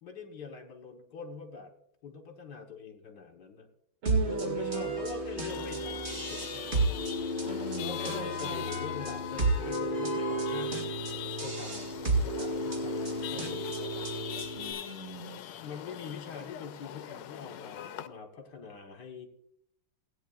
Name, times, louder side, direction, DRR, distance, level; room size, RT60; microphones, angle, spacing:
voice 1, 0.0-1.7 2.0-3.7 4.3-7.0 7.8-14.1 15.6-19.3, left 5 dB, 55° left, 4 dB, 1.7 m, -44 dB
voice 2, 4.0-4.9 7.4-8.6 14.5-15.4, right 3 dB, 80° right, 1 dB, 3.4 m, -39 dB
sound 1, 4.1-14.7, right 2 dB, 35° right, 1.9 m, -32 dB
sound 2, 4.7-7.2 8.0-10.6, left 1 dB, 5° right, 3.5 m, -48 dB
Chatter / Vehicle horn car horn honking / Traffic noise roadway noise, 5.5-18.1, left 11 dB, 85° left, 1.4 m, -41 dB
18.5 x 9.1 x 2.4 m, 0.71 s
omnidirectional pair, 2.3 m